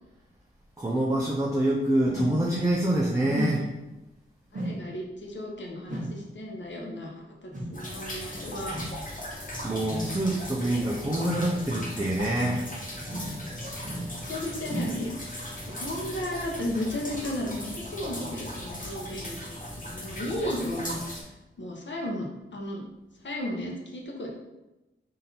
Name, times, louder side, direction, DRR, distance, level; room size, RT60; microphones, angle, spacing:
voice 1, 0.8-3.6 9.6-12.6, right 1 dB, 15° right, -4 dB, 0.6 m, -26 dB
sound 1, 2.1-2.4 3.3-3.6 4.5-4.8 5.9-6.2 7.5-7.7 8.7-9.0 9.9-10.1 11.2-11.6 12.4-12.7 13.1-13.4 13.8-14.2 14.6-15.0, right 1 dB, 35° right, 1.1 m, -33 dB
voice 2, 4.5-8.8 14.1-19.5 19.8-21.0 21.6-22.8 23.2-24.4, left 1 dB, 60° left, -1 dB, 0.9 m, -34 dB
sound 2, 7.7-21.2, equal, 40° left, 1.1 m, -38 dB
3.8 x 2.7 x 4.1 m, 1.0 s
wide cardioid pair, 90°, 21 cm